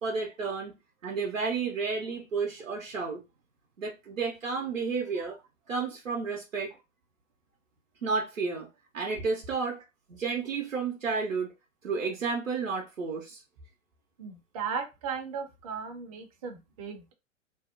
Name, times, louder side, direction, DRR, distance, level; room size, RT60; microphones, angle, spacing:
voice 1, 0.0-0.7 1.0-3.2 3.8-5.4 5.7-6.7 8.0-8.7 8.9-9.8 10.1-11.5 11.8-13.4, right 4 dB, 85° right, 0.6 m, -31 dB
voice 2, 14.2-17.1, right 6 dB, 30° right, 0.5 m, -37 dB
2.6 x 2.0 x 2.4 m
figure-of-eight pair, 110°, 38 cm